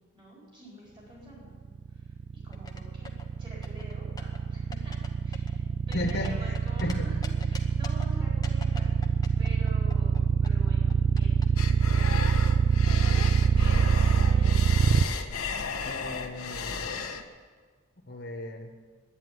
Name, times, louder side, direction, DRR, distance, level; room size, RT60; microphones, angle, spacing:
voice 1, 0.1-1.5 2.0-5.0 5.2-11.4 11.9-12.2 13.0-13.2 13.6-14.5, right 1 dB, 25° right, -6 dB, 4.4 m, -47 dB
sound 1, 1.7-15.0, right 6 dB, 55° right, 0.3 m, -24 dB
sound 2, 2.5-3.3 3.6-4.4 4.7-5.1 5.3-6.9 7.2-8.1 8.4-11.5, left 4 dB, 20° left, 0.9 m, -44 dB
voice 2, 5.9-6.6 6.8-7.1 15.8-16.9 18.1-18.7, left 1 dB, 50° left, 3 dB, 1.4 m, -34 dB
sound 3, 11.6-17.2, left 4 dB, 90° left, 1.1 m, -34 dB
11.0 x 9.5 x 9.4 m, 1.5 s
head